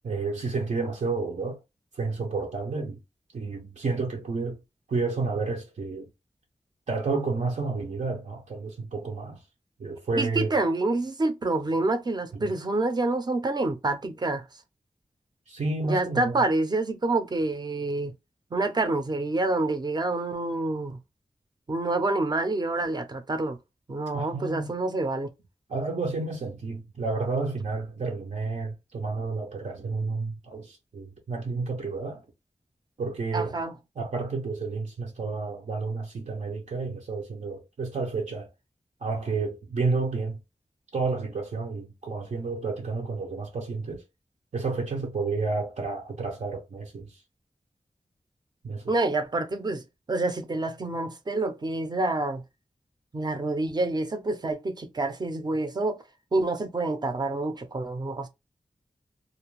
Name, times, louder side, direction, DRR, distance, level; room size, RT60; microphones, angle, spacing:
voice 1, 0.0-1.6 1.9-3.0 3.3-4.6 4.9-6.1 6.9-9.4 9.8-10.6 12.3-12.5 15.5-16.4 24.1-24.7 25.7-32.3 33.0-33.6 34.0-38.5 39.0-40.4 40.9-44.0 44.5-47.2 48.6-48.9, right 3 dB, 75° right, 0.7 m, -31 dB
voice 2, 10.2-14.4 15.8-18.1 18.5-21.0 21.7-23.6 23.9-25.3 33.3-33.7 48.9-49.8 50.1-52.4 53.1-56.0 56.3-58.3, right 2 dB, 35° right, 0.6 m, -27 dB
2.5 x 2.2 x 3.0 m
wide cardioid pair, 105°, 12 cm